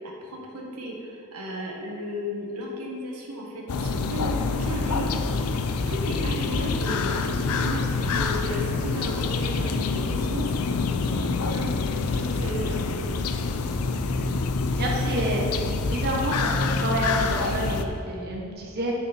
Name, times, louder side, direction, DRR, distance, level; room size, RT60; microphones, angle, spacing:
voice 1, 0.0-5.4 5.9-7.2 7.5-11.7 12.1-12.9, equal, 85° right, -2 dB, 1.4 m, -34 dB
sound 1, 3.7-17.9, left 4 dB, 80° left, 0.5 m, -26 dB
voice 2, 14.8-15.4 15.9-18.9, right 1 dB, 45° right, -2 dB, 1.2 m, -28 dB
9.2 x 6.2 x 4.3 m, 2.6 s
head